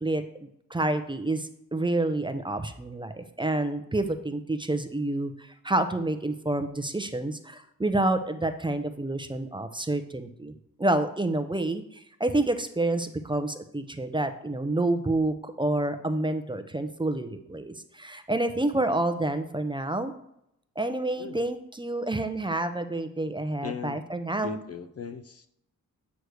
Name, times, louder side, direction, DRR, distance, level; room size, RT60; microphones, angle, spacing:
voice 1, 0.0-10.5 10.8-20.1 20.8-24.6, right 2 dB, 15° right, 8 dB, 0.6 m, -28 dB
voice 2, 23.6-24.1 24.4-25.5, left 7 dB, 45° left, 10 dB, 0.5 m, -38 dB
8.2 x 3.2 x 6.3 m, 0.75 s
cardioid pair, 90°, 35 cm